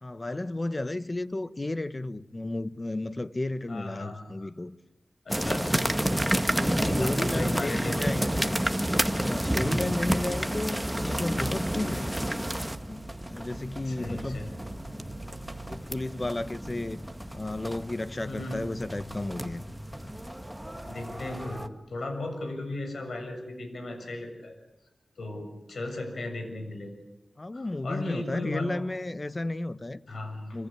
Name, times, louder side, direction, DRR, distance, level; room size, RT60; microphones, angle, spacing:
voice 1, 0.0-4.8 6.5-8.6 9.2-12.3 12.9-14.4 15.7-17.0 17.3-19.6 27.4-30.0 30.5-30.7, left 2 dB, 30° left, 1.2 m, -33 dB
voice 2, 3.7-4.5 5.3-6.2 6.8-8.1 9.5-9.8 13.8-14.5 18.3-18.6 20.8-24.5 25.2-26.9 27.5-28.8 30.1-30.6, left 2 dB, 80° left, 7.0 m, -36 dB
sound 1, 5.3-21.7, equal, 5° right, 1.9 m, -30 dB
sound 2, 11.0-16.8, right 3 dB, 75° right, 2.0 m, -49 dB
26.5 x 25.5 x 8.7 m
wide cardioid pair, 65°, 0 cm